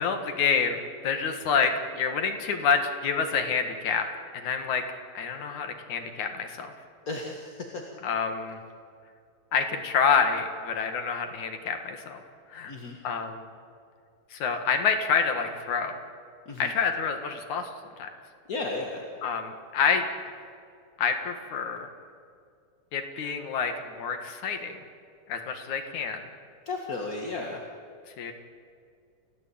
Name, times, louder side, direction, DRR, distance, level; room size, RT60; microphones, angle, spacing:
voice 1, 0.0-4.1 4.3-4.8 5.1-6.7 8.0-8.6 9.5-12.2 12.5-12.7 13.0-13.5 14.3-16.0 16.6-17.7 18.0-18.1 19.2-20.1 21.0-21.9 22.9-24.7 25.3-26.3 28.2-28.3, left 6 dB, 65° left, 6 dB, 3.1 m, -27 dB
voice 2, 7.1-7.9 12.7-13.0 16.5-16.7 18.5-19.0 26.7-27.6, left 3 dB, 35° left, 0 dB, 1.7 m, -34 dB
29.0 x 16.5 x 8.7 m, 2.3 s
omnidirectional pair, 3.7 m